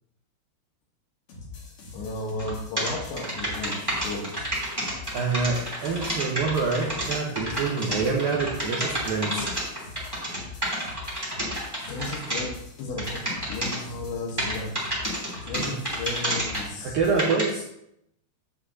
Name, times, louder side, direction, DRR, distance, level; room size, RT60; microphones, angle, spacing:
sound 1, 1.3-17.3, left 4 dB, 55° left, 2.6 m, -43 dB
voice 1, 1.9-4.6 11.9-14.7 15.4-17.0, left 2 dB, 75° left, 1 dB, 3.2 m, -34 dB
sound 2, 2.4-2.5 2.8-12.4 13.0-13.8 14.4-16.6 17.2-17.4, right 1 dB, 10° right, 1.4 m, -29 dB
voice 2, 5.1-9.4 16.8-17.6, right 4 dB, 75° right, -2 dB, 2.1 m, -26 dB
10.0 x 8.8 x 2.7 m, 0.77 s
omnidirectional pair, 5.7 m